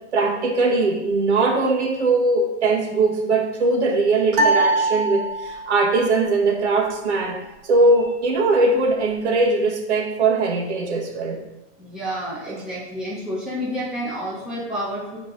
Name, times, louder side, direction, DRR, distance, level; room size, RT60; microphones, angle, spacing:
voice 1, 0.1-11.4 12.5-12.6, right 3 dB, 70° right, 0 dB, 1.6 m, -20 dB
sound 1, 4.3-5.8, right 2 dB, 15° right, 0.6 m, -21 dB
voice 2, 11.8-15.2, equal, ahead, -9 dB, 1.6 m, -29 dB
7.3 x 4.6 x 3.9 m, 0.97 s
hypercardioid pair, 165°, 36 cm